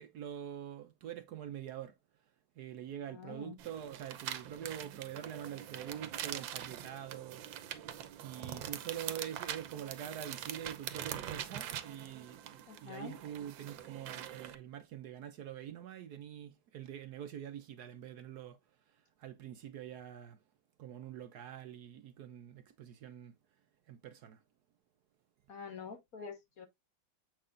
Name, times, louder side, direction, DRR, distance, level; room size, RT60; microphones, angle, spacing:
voice 1, 0.0-2.0 2.6-7.7 8.2-18.6 18.9-20.4 20.8-23.4 23.9-24.4, right 10 dB, 65° right, 1.1 m, -45 dB
voice 2, 3.1-3.6 12.7-13.2 25.5-26.7, left 6 dB, 50° left, 1.8 m, -46 dB
sound 1, 3.6-14.5, right 10 dB, 85° right, 1.5 m, -44 dB
7.5 x 5.9 x 2.5 m
omnidirectional pair, 2.0 m